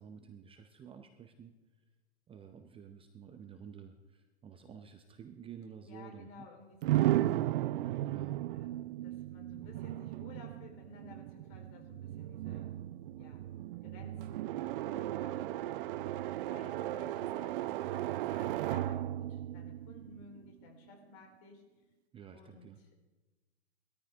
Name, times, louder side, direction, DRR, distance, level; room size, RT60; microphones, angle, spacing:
voice 1, 0.0-1.5 2.3-6.5 7.1-7.4 8.1-8.4 22.1-22.8, right 7 dB, 15° right, 7 dB, 0.7 m, -51 dB
voice 2, 5.9-7.1 8.5-12.8 13.2-13.5 13.8-15.8 16.4-21.6 22.3-22.7, left 3 dB, 40° left, 2 dB, 3.8 m, -55 dB
sound 1, 6.8-20.6, right 14 dB, 55° right, 0.5 m, -35 dB
20.5 x 13.5 x 3.5 m, 1.2 s
hypercardioid pair, 120°, 34 cm